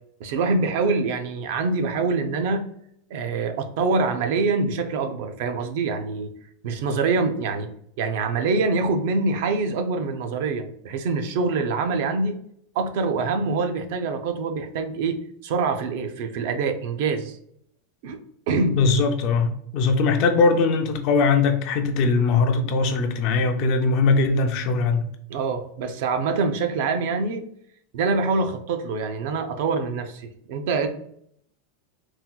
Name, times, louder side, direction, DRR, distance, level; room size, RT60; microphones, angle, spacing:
voice 1, 0.2-2.7 3.1-6.3 6.6-7.7 8.0-12.4 12.8-17.4 18.0-18.2 18.5-18.8 25.3-27.5 27.9-30.9, right 4 dB, 50° right, 0.3 m, -25 dB
voice 2, 18.7-25.1, left 4 dB, 35° left, 0.3 m, -21 dB
4.1 x 2.2 x 2.2 m
supercardioid pair, 180°, 0 cm